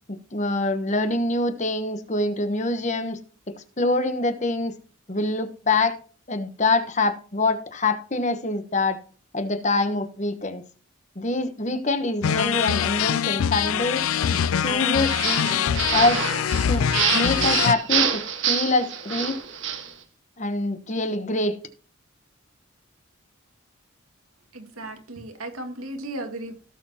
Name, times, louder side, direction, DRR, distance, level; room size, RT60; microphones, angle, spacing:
voice 1, 0.1-3.2 3.5-4.7 5.1-6.0 6.3-9.0 9.3-10.6 11.2-14.0 14.5-16.2 16.7-16.9 17.1-19.4 20.4-21.6, left 2 dB, 35° left, 9 dB, 1.1 m, -25 dB
sound 1, 12.2-17.7, left 8 dB, 80° left, 0.4 m, -23 dB
sound 2, 15.0-19.9, right 8 dB, 60° right, 1.4 m, -26 dB
voice 2, 24.5-26.5, right 1 dB, 90° right, 5 dB, 2.1 m, -35 dB
17.0 x 7.0 x 2.9 m, 0.39 s
head